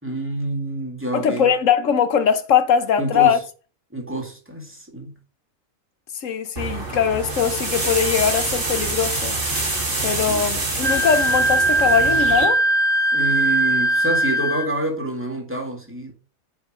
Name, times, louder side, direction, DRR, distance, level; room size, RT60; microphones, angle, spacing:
voice 1, 0.0-1.5 3.0-3.4 3.9-5.1 10.3-10.4 13.1-16.1, right 1 dB, 10° right, 2.3 m, -27 dB
voice 2, 1.1-3.4 6.2-9.4 10.0-12.6, left 8 dB, 65° left, 1.3 m, -21 dB
sound 1, 6.6-12.5, right 2 dB, 60° right, 2.8 m, -26 dB
Wind instrument woodwind instrument, 10.8-14.7, right 1 dB, 40° right, 1.2 m, -20 dB
9.4 x 5.3 x 5.0 m
omnidirectional pair, 1.5 m